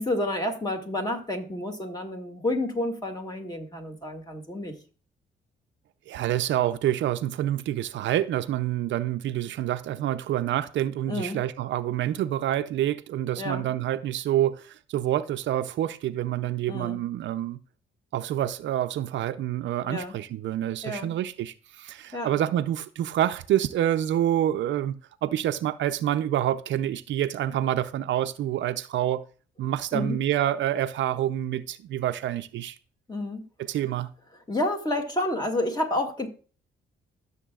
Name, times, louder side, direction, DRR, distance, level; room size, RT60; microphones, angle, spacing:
voice 1, 0.0-4.7 11.1-11.4 13.4-13.6 16.7-17.0 19.9-20.1 20.8-21.1 22.1-22.4 29.9-30.2 33.1-33.4 34.5-36.3, left 1 dB, 20° left, 2.1 m, -30 dB
voice 2, 6.1-17.6 18.1-29.2 29.6-32.8 33.6-34.1, right 12 dB, 70° right, 0.5 m, -27 dB
14.0 x 7.1 x 2.4 m
cardioid pair, 90°, 20 cm